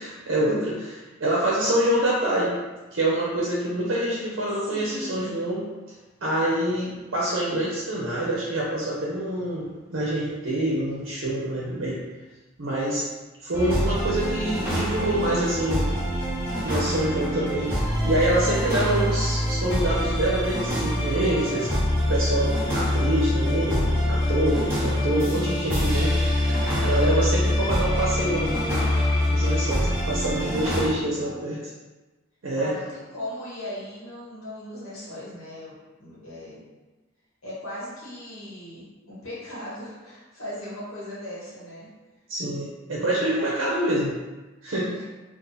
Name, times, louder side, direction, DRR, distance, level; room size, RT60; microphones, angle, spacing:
voice 1, 0.0-2.5 2.9-5.6 6.2-12.0 12.6-13.1 13.4-15.9 16.6-17.8 18.0-21.7 22.1-26.2 26.8-29.0 29.3-31.6 32.4-32.7 42.3-44.1 44.6-44.9, right 1 dB, 65° right, -5 dB, 0.6 m, -26 dB
voice 2, 4.6-5.6 21.2-21.8 30.6-31.5 32.5-35.7 36.0-36.6 37.4-41.9 42.9-43.4 44.9-45.1, left 1 dB, 85° left, -8 dB, 1.3 m, -39 dB
sound 1, 13.5-30.9, left 1 dB, 10° right, 1.0 m, -25 dB
2.6 x 2.4 x 3.8 m, 1.2 s
head